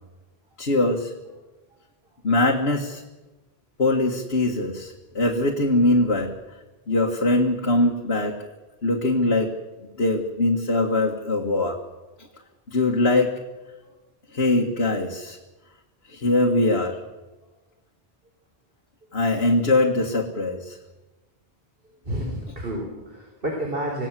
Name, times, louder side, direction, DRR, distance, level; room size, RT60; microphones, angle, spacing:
voice 1, 0.6-1.1 2.2-3.0 3.8-6.3 6.9-8.4 8.8-9.5 10.0-11.8 12.7-13.3 14.3-15.4 16.1-17.0 19.1-20.8, left 2 dB, 90° left, 1 dB, 2.1 m, -22 dB
voice 2, 22.0-24.1, right 1 dB, 65° right, 0 dB, 4.4 m, -30 dB
26.5 x 17.5 x 7.6 m, 1.1 s
omnidirectional pair, 1.0 m